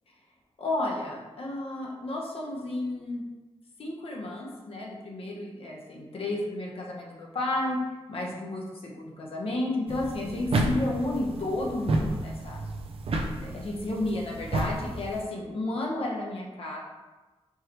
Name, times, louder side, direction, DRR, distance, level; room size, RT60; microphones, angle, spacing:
voice 1, 0.6-3.2 3.8-7.8 8.1-12.6 13.3-16.8, left 2 dB, 65° left, -2 dB, 0.9 m, -32 dB
sound 1, 9.9-15.2, right 2 dB, 65° right, 0.5 m, -31 dB
4.6 x 3.2 x 3.0 m, 1.2 s
wide cardioid pair, 85°, 10 cm